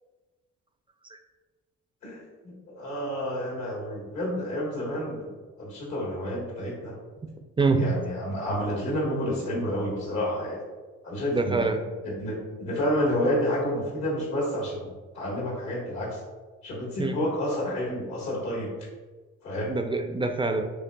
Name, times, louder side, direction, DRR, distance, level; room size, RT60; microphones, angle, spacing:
voice 1, 2.0-5.3 5.6-6.9 7.8-10.6 11.0-11.7 12.0-14.9 15.1-16.2 16.6-18.7 19.4-19.7, equal, 65° left, -4 dB, 1.4 m, -29 dB
voice 2, 11.3-11.9 17.0-17.2 19.7-20.6, right 3 dB, 15° right, 5 dB, 0.3 m, -25 dB
6.4 x 2.6 x 2.2 m, 1.3 s
cardioid pair, 90°, 30 cm